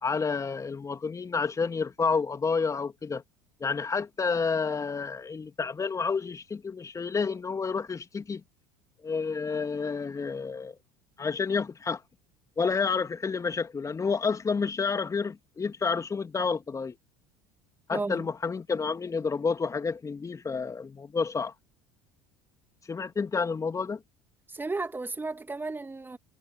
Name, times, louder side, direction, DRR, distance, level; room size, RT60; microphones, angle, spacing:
voice 1, 0.0-3.2 3.6-8.4 9.0-10.8 11.2-12.0 12.6-17.0 17.9-21.5 22.9-24.0, left 5 dB, 25° left, 2.9 m, -29 dB
voice 2, 17.9-18.3 24.5-26.2, right 3 dB, 15° right, 2.5 m, -34 dB
figure-of-eight pair, 70°, 14 cm